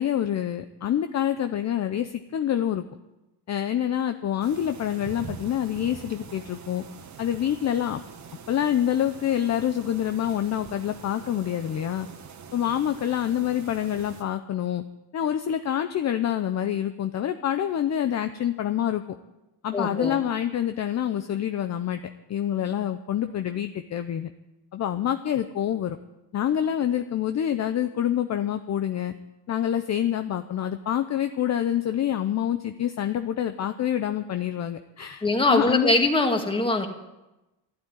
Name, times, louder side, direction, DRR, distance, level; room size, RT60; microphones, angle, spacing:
voice 1, 0.0-2.8 3.5-6.8 7.2-8.0 8.5-12.1 12.5-14.8 15.1-19.0 19.6-22.0 22.3-24.3 24.7-26.0 26.3-29.1 29.5-35.9, left 10 dB, 40° left, 8 dB, 0.7 m, -26 dB
sound 1, 4.4-14.2, right 6 dB, 40° right, 1.5 m, -44 dB
voice 2, 19.7-20.2 35.2-36.9, left 2 dB, 10° left, 4 dB, 2.0 m, -22 dB
12.5 x 11.5 x 9.3 m, 1.0 s
cardioid pair, 125°, 43 cm